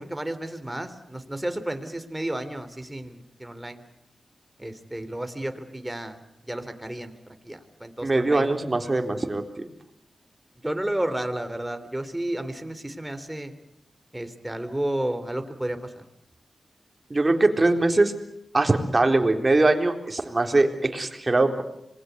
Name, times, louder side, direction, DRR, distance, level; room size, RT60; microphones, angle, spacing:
voice 1, 0.0-3.8 4.6-6.2 6.4-8.5 10.6-13.5 14.1-16.0, right 1 dB, 15° right, 9 dB, 3.5 m, -32 dB
voice 2, 8.0-9.7 17.1-18.1 18.5-21.6, right 2 dB, 35° right, 5 dB, 3.9 m, -22 dB
26.5 x 21.0 x 8.3 m, 0.81 s
cardioid pair, 45°, 0 cm